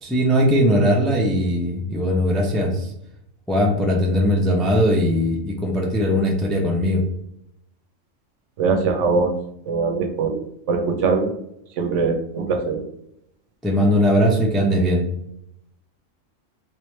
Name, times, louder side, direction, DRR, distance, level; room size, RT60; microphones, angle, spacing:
voice 1, 0.0-2.9 3.5-7.0 13.6-15.0, equal, ahead, 0 dB, 0.3 m, -19 dB
voice 2, 8.6-9.3 9.7-11.3 11.8-12.8, right 4 dB, 70° right, 4 dB, 0.9 m, -22 dB
3.6 x 3.1 x 3.1 m, 0.76 s
omnidirectional pair, 1.3 m